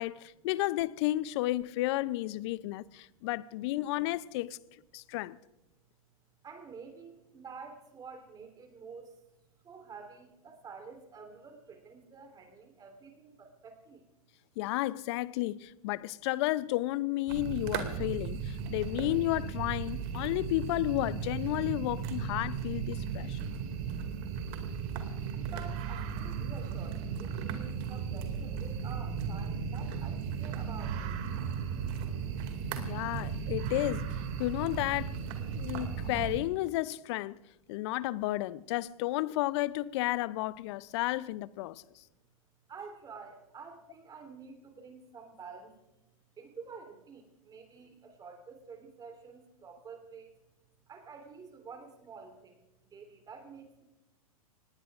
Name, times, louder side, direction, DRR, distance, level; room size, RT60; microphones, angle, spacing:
voice 1, 0.0-4.6 4.9-5.4 14.6-23.4 32.8-35.2 35.5-37.4 37.7-41.8, left 17 dB, 45° left, 0.5 m, -32 dB
voice 2, 6.4-9.1 9.6-14.1 25.3-31.7 37.8-37.9 42.7-45.7 46.4-50.3 50.9-52.6 52.9-53.8, right 5 dB, 20° right, 3.4 m, -49 dB
sound 1, 17.3-36.4, right 6 dB, 45° right, 2.3 m, -36 dB
26.0 x 19.5 x 2.5 m
hypercardioid pair, 110°, 19 cm